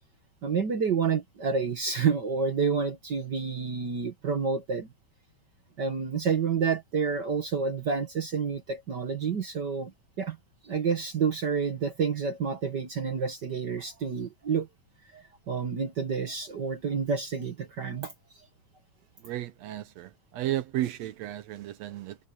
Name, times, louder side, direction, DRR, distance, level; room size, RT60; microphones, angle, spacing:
voice 1, 0.4-4.9 5.8-9.9 10.2-10.4 10.6-14.7 15.1-18.1, right 5 dB, 50° right, 1.3 m, -29 dB
voice 2, 19.2-22.2, right 13 dB, 70° right, 1.7 m, -33 dB
omnidirectional pair, 3.7 m